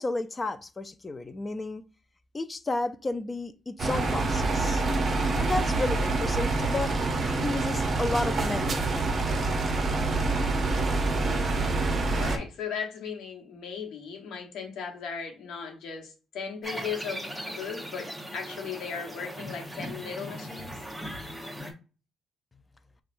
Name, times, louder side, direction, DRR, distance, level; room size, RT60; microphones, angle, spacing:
voice 1, 0.0-1.8 2.3-4.8 5.4-6.9 7.4-9.0, left 2 dB, 25° left, 0.4 m, -32 dB
sound 1, 3.8-12.4, right 3 dB, 45° right, 0.7 m, -26 dB
voice 2, 12.1-20.8, left 6 dB, 80° left, 1.1 m, -37 dB
sound 2, 16.6-21.7, equal, ahead, 1.0 m, -39 dB
5.2 x 2.3 x 2.5 m
cardioid pair, 90°, 0 cm